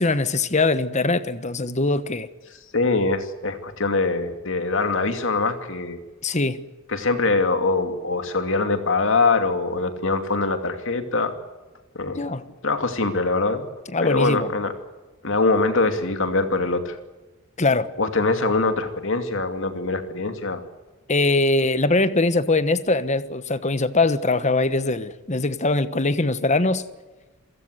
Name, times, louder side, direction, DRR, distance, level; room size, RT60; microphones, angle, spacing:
voice 1, 0.0-2.3 6.2-6.6 12.2-12.4 13.9-14.5 17.6-17.9 21.1-26.8, left 2 dB, 35° left, 13 dB, 1.2 m, -22 dB
voice 2, 2.7-6.0 6.9-11.4 11.9-12.2 12.6-13.7 14.0-14.7 15.2-17.0 18.0-20.6, left 3 dB, 65° left, 7 dB, 2.7 m, -23 dB
28.0 x 17.0 x 8.1 m, 1.2 s
head